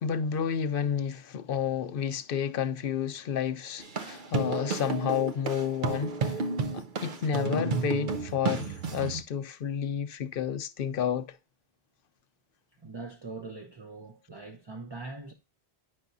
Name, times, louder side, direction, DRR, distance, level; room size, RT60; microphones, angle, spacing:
voice 1, 0.0-6.4 6.7-11.3, left 8 dB, 65° left, 0.8 m, -31 dB
sound 1, 3.8-9.2, right 4 dB, 55° right, 0.9 m, -32 dB
voice 2, 12.8-15.3, right 3 dB, 30° right, 0.7 m, -42 dB
9.4 x 5.8 x 2.6 m
omnidirectional pair, 1.1 m